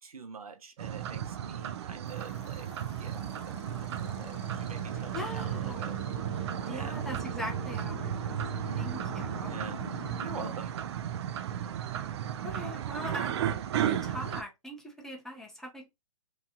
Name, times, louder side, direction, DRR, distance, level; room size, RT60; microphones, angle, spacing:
voice 1, 0.0-2.7 3.0-6.0 6.7-7.0 9.5-9.8 10.2-10.7, right 5 dB, 90° right, 0.7 m, -45 dB
sound 1, 0.8-14.4, right 10 dB, 50° right, 0.4 m, -34 dB
sound 2, 2.0-10.5, left 5 dB, 60° left, 0.6 m, -46 dB
voice 2, 5.1-5.9 6.7-9.5 12.4-13.4 13.8-15.9, left 1 dB, ahead, 0.6 m, -41 dB
2.9 x 2.3 x 2.6 m
hypercardioid pair, 135°, 18 cm